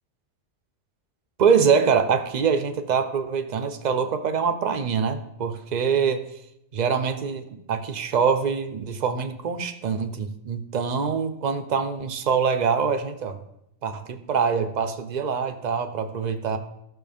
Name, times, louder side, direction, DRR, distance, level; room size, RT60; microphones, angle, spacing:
voice 1, 1.4-6.2 6.7-13.4 13.8-16.6, right 6 dB, 45° right, 8 dB, 0.7 m, -24 dB
14.0 x 6.1 x 3.5 m, 0.80 s
omnidirectional pair, 1.3 m